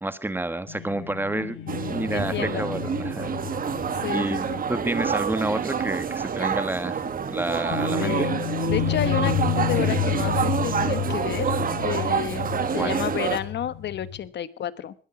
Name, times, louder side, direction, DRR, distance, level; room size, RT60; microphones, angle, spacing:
voice 1, 0.0-1.6 1.9-3.3 4.1-7.0 7.3-8.3 12.8-13.0, right 2 dB, 10° right, 12 dB, 1.4 m, -29 dB
sound 1, 0.7-6.1 6.4-6.5 7.7-14.3, left 9 dB, 80° left, 1.3 m, -30 dB
voice 2, 1.3-2.7 4.0-4.6 8.0-8.4 8.7-11.5 11.8-12.5 12.7-14.9, left 10 dB, 60° left, 16 dB, 1.1 m, -31 dB
sound 2, 1.7-13.4, right 7 dB, 45° right, 1.6 m, -27 dB
21.5 x 8.2 x 6.0 m, 0.42 s
cardioid pair, 90°, 20 cm